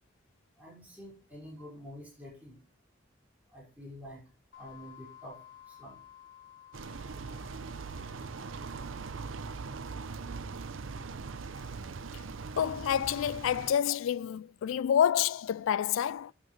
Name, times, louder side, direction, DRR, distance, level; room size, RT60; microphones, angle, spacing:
voice 1, 0.6-2.6 3.5-4.2 4.6-5.4 5.7-6.0 11.6-11.7, equal, 10° right, 5.4 m, -48 dB
sound 1, 4.5-11.0, left 11 dB, 70° left, 1.4 m, -56 dB
sound 2, 6.7-13.7, right 4 dB, 85° right, 0.7 m, -41 dB
voice 2, 12.6-16.3, left 9 dB, 90° left, 0.3 m, -28 dB
11.0 x 7.9 x 3.2 m
head